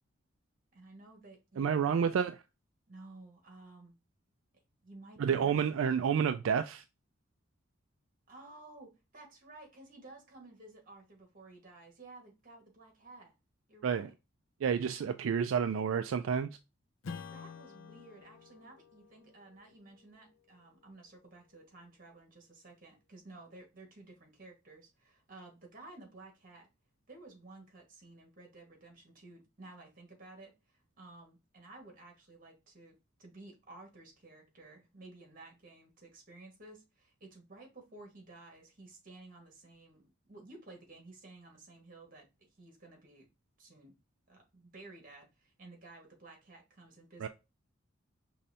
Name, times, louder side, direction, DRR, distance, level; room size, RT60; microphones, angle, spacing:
voice 1, 0.7-2.1 2.9-3.9 4.8-5.7 8.3-13.3 13.7-14.1 17.3-26.7 27.1-42.3 42.6-43.3 43.6-43.9 44.3-47.3, right 2 dB, 40° right, 1.5 m, -54 dB
voice 2, 1.6-2.4 5.2-6.8 13.8-14.1 14.6-16.5 47.2-47.3, right 7 dB, 80° right, 0.3 m, -29 dB
Strum, 17.0-22.0, left 5 dB, 75° left, 0.5 m, -50 dB
5.4 x 3.1 x 2.7 m
head